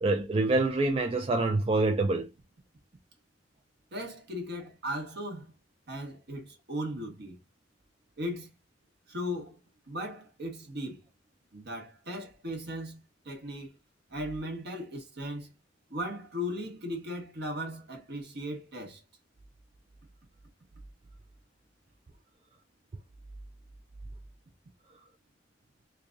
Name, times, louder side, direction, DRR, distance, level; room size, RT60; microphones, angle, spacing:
voice 1, 0.0-2.3, right 2 dB, 30° right, 0.4 m, -26 dB
voice 2, 3.9-5.5 5.9-7.4 8.2-8.5 9.1-9.6 9.9-11.0 11.5-13.8 14.1-15.5 15.9-19.0, equal, 60° right, 1.4 m, -37 dB
3.2 x 2.6 x 3.5 m
head